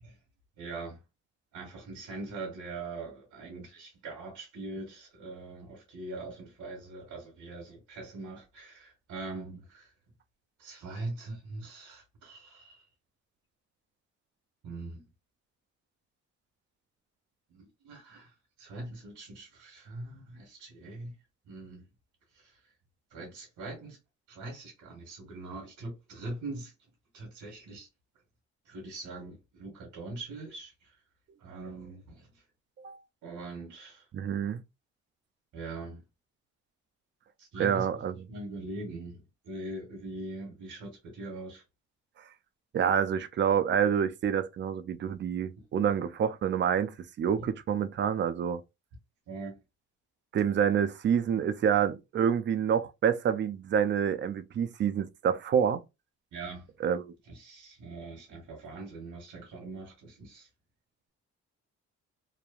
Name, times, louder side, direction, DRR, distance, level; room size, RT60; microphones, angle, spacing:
voice 1, 0.6-1.0 1.5-9.9 10.6-12.8 14.6-15.0 17.5-21.1 21.4-21.9 22.3-22.6 23.1-24.0 24.3-26.7 27.1-27.9 28.6-30.9 31.4-32.4 33.2-34.1 35.5-36.0 37.4-37.8 38.3-41.6 47.4-47.5 49.3-49.6 56.3-56.7 57.3-60.5, right 2 dB, 75° right, 1.3 m, -42 dB
voice 2, 34.1-34.6 37.6-38.1 42.7-48.6 50.3-55.8 56.8-57.1, right 8 dB, 40° right, 0.4 m, -27 dB
3.1 x 2.2 x 2.3 m
cardioid pair, 90°, 30 cm